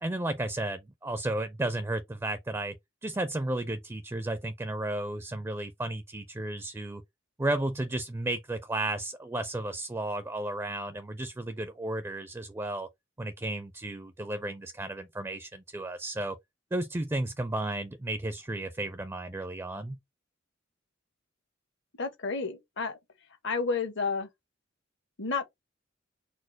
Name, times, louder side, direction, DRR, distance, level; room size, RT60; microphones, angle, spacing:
voice 1, 0.0-7.0 7.4-12.9 13.2-16.4 16.7-20.0, right 1 dB, 15° right, 0.4 m, -33 dB
voice 2, 22.0-23.0 23.4-24.3 25.2-25.4, left 4 dB, 65° left, 0.9 m, -30 dB
4.3 x 2.0 x 4.4 m
head